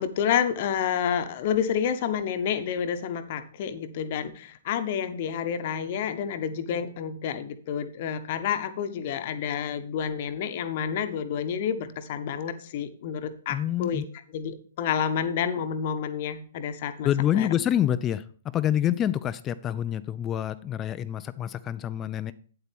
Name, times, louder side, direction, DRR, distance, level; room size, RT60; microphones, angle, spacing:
voice 1, 0.0-14.0 14.3-17.5, left 8 dB, 40° left, 11 dB, 0.9 m, -29 dB
voice 2, 13.5-14.0 17.0-18.3 18.5-22.3, left 10 dB, 20° left, 13 dB, 0.3 m, -27 dB
8.8 x 8.1 x 3.5 m, 0.44 s
figure-of-eight pair, 120°, 0 cm